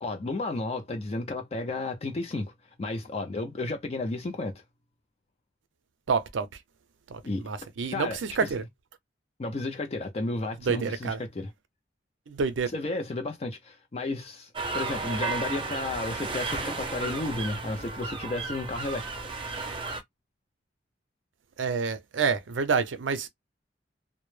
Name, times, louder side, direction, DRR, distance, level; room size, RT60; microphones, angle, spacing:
voice 1, 0.0-2.5 2.8-4.6 7.2-7.5 7.9-8.7 9.4-11.5 12.7-19.1, left 2 dB, 35° left, 0.4 m, -33 dB
voice 2, 6.1-6.5 7.1-8.6 10.7-11.2 12.3-12.7 21.6-23.3, right 5 dB, 90° right, 0.5 m, -28 dB
sound 1, 14.5-20.0, right 3 dB, 25° right, 0.5 m, -33 dB
2.1 x 2.0 x 3.1 m
head